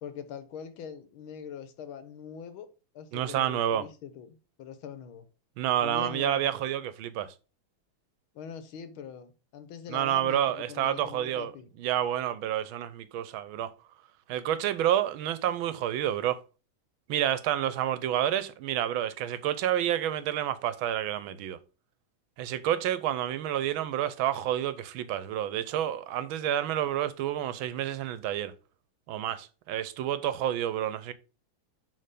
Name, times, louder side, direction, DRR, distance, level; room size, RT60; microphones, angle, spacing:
voice 1, 0.0-2.7 2.9-5.3 5.8-6.5 8.3-11.7, left 7 dB, 85° left, 1.7 m, -43 dB
voice 2, 3.1-3.9 5.6-7.3 9.9-11.5 11.8-13.7 14.3-16.4 17.1-21.6 22.4-28.5 29.1-31.1, right 11 dB, 85° right, 1.5 m, -29 dB
6.6 x 3.9 x 5.1 m
omnidirectional pair, 2.2 m